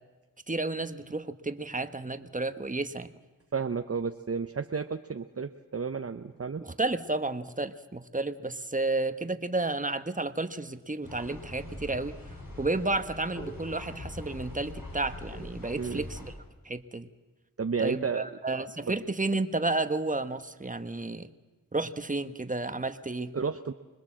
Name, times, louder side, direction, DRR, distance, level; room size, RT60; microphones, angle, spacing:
voice 1, 0.5-3.1 6.6-12.2 12.6-16.3 16.6-17.1 17.8-21.3 21.7-23.3, right 2 dB, 25° right, 10 dB, 1.4 m, -31 dB
voice 2, 3.5-6.6 15.7-16.1 17.6-18.3 23.3-23.7, right 5 dB, 45° right, 7 dB, 0.8 m, -32 dB
sound 1, 11.0-16.3, left 1 dB, 80° left, 5.6 m, -42 dB
25.5 x 20.0 x 7.6 m, 1.2 s
cardioid pair, 45°, 34 cm